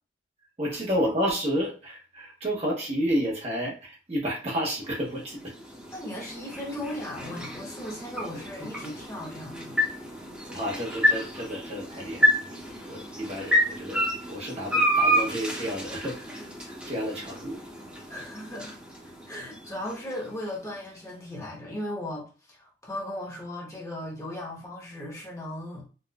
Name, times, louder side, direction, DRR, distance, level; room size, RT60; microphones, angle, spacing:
voice 1, 0.6-5.5 10.5-16.4 16.7-17.6, equal, 35° right, 0.9 m, -31 dB
sound 1, 4.7-20.9, equal, 5° right, 0.9 m, -30 dB
voice 2, 5.9-9.8 18.1-18.7 19.0-25.9, left 1 dB, 15° left, 1.0 m, -37 dB
4.1 x 2.3 x 2.3 m
head